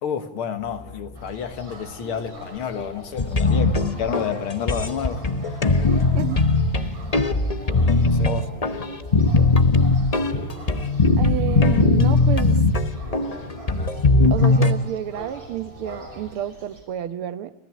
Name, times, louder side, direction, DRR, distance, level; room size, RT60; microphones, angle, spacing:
voice 1, 0.0-5.6 8.0-8.5, left 7 dB, 75° left, 10 dB, 2.3 m, -30 dB
sound 1, 0.6-16.3, equal, 5° left, 2.5 m, -43 dB
sound 2, 1.1-16.8, right 2 dB, 60° right, 6.6 m, -45 dB
sound 3, 3.2-14.7, left 3 dB, 55° left, 0.4 m, -20 dB
voice 2, 11.2-12.6 14.3-17.5, right 11 dB, 80° right, 13 dB, 1.9 m, -30 dB
30.0 x 14.0 x 8.4 m, 0.86 s
omnidirectional pair, 2.4 m